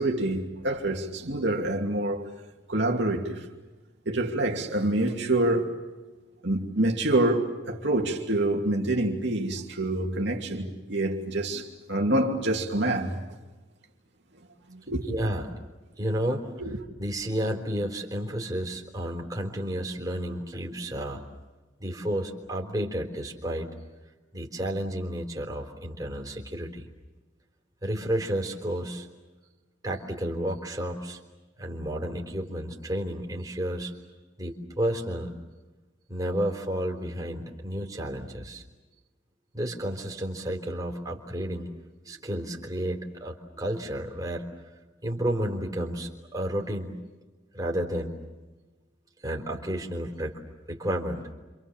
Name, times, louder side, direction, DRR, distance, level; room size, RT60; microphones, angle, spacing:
voice 1, 0.0-2.3 2.7-3.5 4.1-5.7 6.4-13.2 14.7-15.1 16.6-16.8, right 1 dB, 55° right, 2.7 m, -26 dB
voice 2, 15.1-15.5 16.0-16.5 17.0-21.2 21.8-23.7 24.3-26.9 27.8-29.1 29.8-31.2 31.6-33.9 34.4-35.3 36.1-38.6 39.5-41.7 42.1-44.5 45.0-47.0 47.5-48.2 49.2-50.4 50.7-51.3, right 1 dB, 20° right, 3.7 m, -31 dB
30.0 x 27.0 x 7.3 m
head